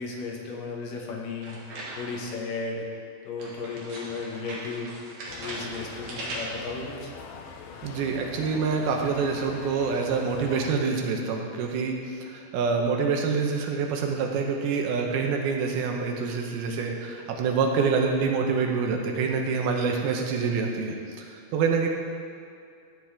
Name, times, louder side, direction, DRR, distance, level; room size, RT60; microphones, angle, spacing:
voice 1, 0.0-2.8 3.2-4.9 5.3-7.1, left 4 dB, 70° left, -1 dB, 2.5 m, -35 dB
sound 1, 1.4-2.4 3.4-6.7, right 2 dB, 50° right, 2.2 m, -39 dB
sound 2, 5.3-10.7, left 6 dB, 90° left, 2.6 m, -43 dB
voice 2, 7.8-21.9, right 5 dB, 80° right, 2 dB, 2.7 m, -26 dB
12.5 x 7.7 x 3.5 m, 2.4 s
omnidirectional pair, 4.5 m